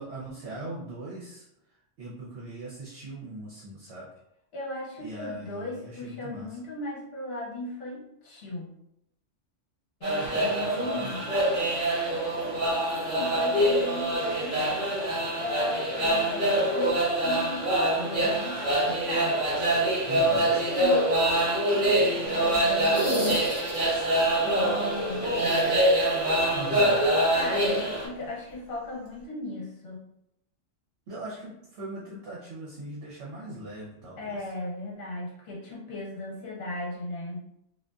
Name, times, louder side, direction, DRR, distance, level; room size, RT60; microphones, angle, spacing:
voice 1, 0.0-1.5 2.0-4.1 5.0-6.5 10.2-10.3 10.6-11.3 20.1-20.5 26.5-27.0 31.1-34.4, right 2 dB, 65° right, -5 dB, 0.9 m, -40 dB
voice 2, 4.5-8.7 10.0-11.2 12.1-14.6 15.4-19.4 20.3-23.4 24.3-25.8 27.3-30.0 34.2-37.4, left 2 dB, 60° left, -4 dB, 1.0 m, -37 dB
sound 1, 10.0-28.1, right 1 dB, 45° right, 1.0 m, -25 dB
sound 2, 22.8-24.2 25.3-26.5 26.7-26.8 28.5-28.6, equal, 30° right, 0.7 m, -31 dB
2.5 x 2.4 x 2.2 m, 0.80 s
omnidirectional pair, 1.3 m